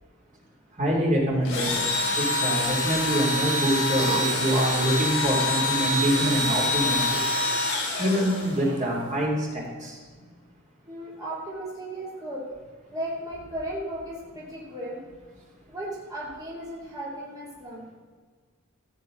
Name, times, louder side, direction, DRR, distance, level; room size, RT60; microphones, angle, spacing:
voice 1, 0.8-1.9 2.2-7.0 8.0-10.0, equal, 35° right, -2 dB, 2.9 m, -25 dB
Engine / Drill, 1.4-8.8, left 2 dB, 60° left, 3.8 m, -26 dB
sound 1, 1.9-2.5 3.2-4.6 6.0-9.1, right 3 dB, 80° right, 2.1 m, -39 dB
voice 2, 10.9-12.4 12.9-15.0 15.7-17.9, right 1 dB, 15° right, -7 dB, 2.6 m, -35 dB
14.5 x 9.1 x 3.9 m, 1.5 s
head